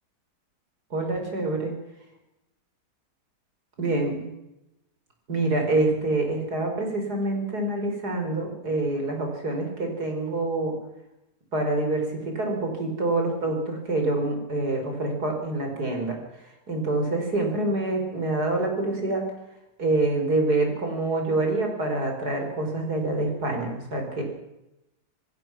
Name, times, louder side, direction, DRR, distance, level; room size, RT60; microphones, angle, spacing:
voice 1, 0.9-1.7 3.8-4.3 5.3-10.7 11.5-16.2 16.7-19.3 19.8-24.2, right 2 dB, 65° right, 3 dB, 5.3 m, -26 dB
27.5 x 16.5 x 6.1 m, 0.90 s
omnidirectional pair, 1.8 m